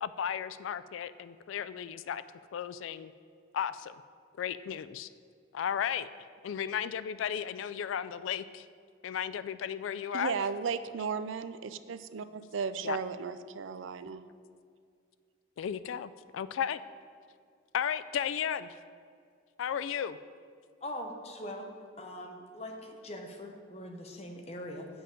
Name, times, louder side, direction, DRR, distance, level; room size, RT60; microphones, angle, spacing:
voice 1, 0.0-2.2 2.5-3.1 3.5-3.9 4.4-5.1 5.5-6.1 6.4-8.7 9.0-10.3 12.8-13.0 15.6-16.8 17.7-18.7 19.6-20.2, left 8 dB, 90° left, 15 dB, 0.3 m, -34 dB
voice 2, 10.1-14.2, right 6 dB, 90° right, 12 dB, 0.4 m, -35 dB
voice 3, 20.8-21.7 22.0-24.9, left 1 dB, 35° left, 2 dB, 0.9 m, -42 dB
7.9 x 5.1 x 7.4 m, 2.2 s
head